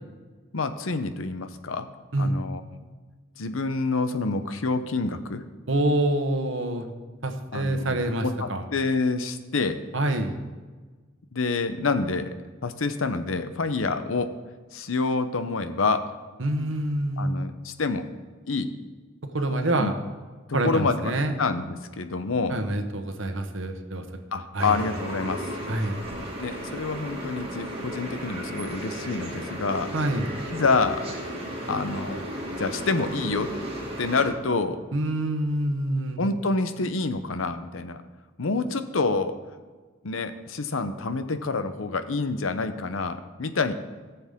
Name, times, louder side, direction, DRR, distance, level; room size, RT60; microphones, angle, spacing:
voice 1, 0.5-1.9 2.2-2.6 3.4-5.4 7.5-9.8 11.3-12.3 12.6-14.3 14.7-16.1 17.2-18.1 18.5-18.7 19.8-19.9 20.5-21.1 21.4-22.6 24.3-25.5 26.4-29.9 30.5-31.0 31.7-32.3 32.6-33.5 34.0-34.8 36.2-38.0 38.4-39.3 40.0-43.7, left 3 dB, 90° left, 10 dB, 0.8 m, -27 dB
voice 2, 5.7-6.9 7.2-8.6 9.9-10.4 16.4-17.4 19.2-19.9 20.5-21.3 22.5-24.0 24.5-24.8 25.7-26.0 29.9-30.3 34.9-36.2, right 1 dB, 70° right, 7 dB, 1.1 m, -26 dB
sound 1, 24.6-34.3, right 1 dB, 30° right, 2.0 m, -35 dB
18.0 x 7.0 x 3.6 m, 1.4 s
head